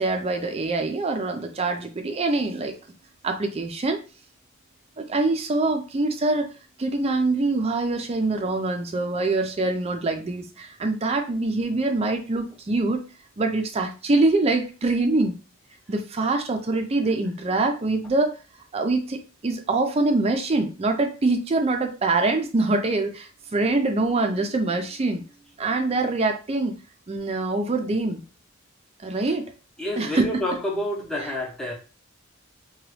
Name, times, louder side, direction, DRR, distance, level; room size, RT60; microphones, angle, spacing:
voice 1, 0.0-2.8 3.2-4.0 5.0-6.5 6.8-13.1 13.4-15.4 15.9-18.3 18.7-25.2 25.6-26.8 27.1-28.2 29.0-29.5 30.0-30.4 31.2-31.3, right 2 dB, 30° right, 5 dB, 0.4 m, -24 dB
voice 2, 29.8-31.7, left 1 dB, 5° left, -3 dB, 0.7 m, -28 dB
2.9 x 2.2 x 3.1 m, 0.33 s
head